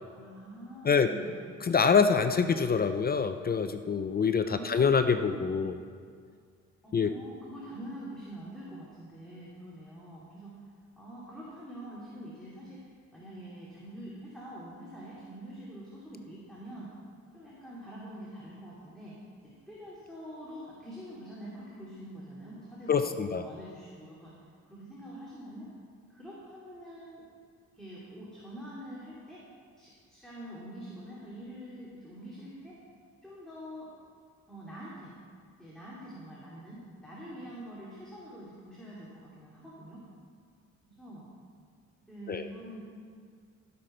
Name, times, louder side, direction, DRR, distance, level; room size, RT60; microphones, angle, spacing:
voice 1, 0.1-1.5 4.4-5.6 6.8-10.6 11.0-16.9 17.3-19.2 19.7-24.3 24.6-25.7 26.1-27.2 27.7-29.5 29.8-32.8 33.2-33.9 34.5-35.2 35.6-40.0 40.9-41.3 42.1-42.8, equal, ahead, -8 dB, 2.5 m, -45 dB
voice 2, 1.6-5.7 6.9-7.1 22.9-23.4 42.3-42.5, left 6 dB, 30° left, 9 dB, 0.5 m, -25 dB
15.5 x 6.7 x 4.4 m, 2.1 s
cardioid pair, 90°, 30 cm